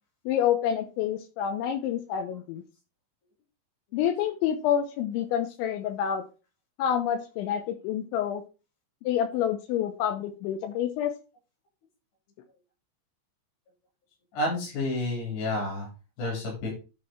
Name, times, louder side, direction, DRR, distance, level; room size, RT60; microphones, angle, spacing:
voice 1, 0.3-2.6 3.9-6.2 6.8-8.4 9.0-11.1, left 9 dB, 80° left, 8 dB, 2.8 m, -28 dB
voice 2, 14.3-15.9 16.2-16.7, left 2 dB, 55° left, -2 dB, 5.3 m, -30 dB
11.5 x 4.1 x 4.3 m, 0.31 s
omnidirectional pair, 6.0 m